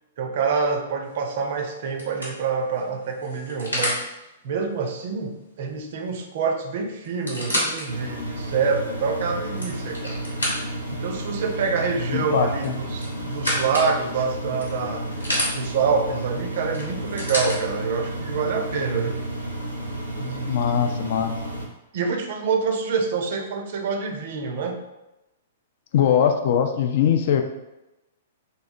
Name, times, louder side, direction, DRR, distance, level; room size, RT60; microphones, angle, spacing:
voice 1, 0.2-4.0 4.4-10.2 10.9-15.1 15.5-19.2 20.2-21.0 21.9-24.8, right 5 dB, 50° right, 4 dB, 0.5 m, -26 dB
sound 1, 1.1-1.4 2.0-4.0 6.1-6.2 6.4-6.5 7.0-7.9 8.5-8.6 9.3-10.9 12.6-13.9 14.6-15.5 16.7-17.6 18.5-18.6, equal, 85° left, 1.0 m, -29 dB
Engine, 7.9-21.7, right 1 dB, 85° right, 0.7 m, -32 dB
voice 2, 12.1-12.7 20.5-21.3 25.9-27.4, left 8 dB, 50° left, 6 dB, 0.3 m, -21 dB
3.1 x 2.8 x 2.6 m, 0.96 s
figure-of-eight pair, 110°, 0 cm